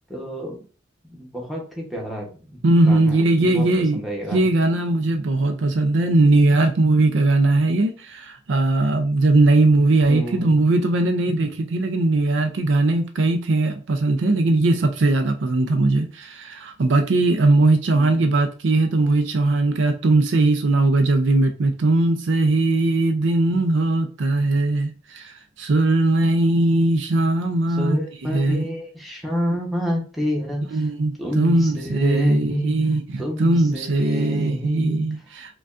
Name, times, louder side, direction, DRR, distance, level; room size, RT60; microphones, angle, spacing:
voice 1, 0.1-0.6 1.1-2.6 2.9-3.2 3.5-3.6 3.9-4.5 10.1-10.6 17.9-18.2 23.5-23.6 27.8-30.8 31.2-32.7 33.2-35.1, equal, ahead, 0.9 m, -28 dB
voice 2, 2.6-4.0 4.3-28.0 28.3-28.6 30.7-35.5, right 2 dB, 70° right, 0.4 m, -19 dB
4.9 x 2.3 x 2.5 m
head